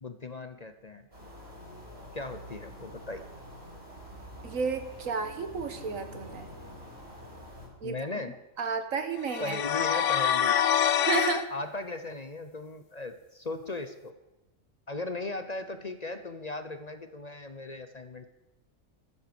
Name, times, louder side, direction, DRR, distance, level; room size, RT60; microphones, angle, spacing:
voice 1, 0.0-1.1 2.1-3.3 7.8-8.4 9.4-10.7 11.5-14.1 14.9-18.2, left 2 dB, 35° left, 9 dB, 0.9 m, -37 dB
sound 1, 1.1-7.7, equal, 50° right, 7.2 m, -46 dB
voice 2, 4.4-6.5 7.8-7.9 8.6-9.6 10.0-10.1 11.1-11.5, right 5 dB, 80° right, 8 dB, 1.7 m, -32 dB
sound 2, 9.3-11.4, left 9 dB, 70° left, 1.1 m, -25 dB
13.5 x 12.5 x 7.0 m, 0.98 s
omnidirectional pair, 1.4 m